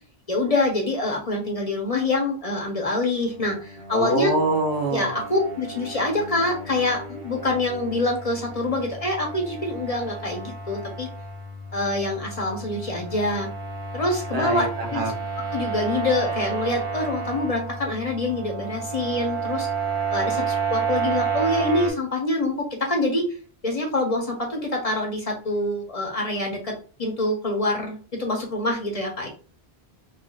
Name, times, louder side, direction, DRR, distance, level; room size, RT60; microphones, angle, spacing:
voice 1, 0.3-4.4 4.9-11.1 11.7-13.5 13.9-15.1 15.5-19.7 20.1-23.3 23.6-26.7 27.0-29.3, left 2 dB, 40° left, 1 dB, 0.8 m, -25 dB
sound 1, 3.1-21.9, right 5 dB, 55° right, 1.2 m, -31 dB
voice 2, 3.9-5.1 14.3-15.1, right 2 dB, 75° right, 3 dB, 1.1 m, -24 dB
4.8 x 2.4 x 2.3 m, 0.39 s
omnidirectional pair, 1.1 m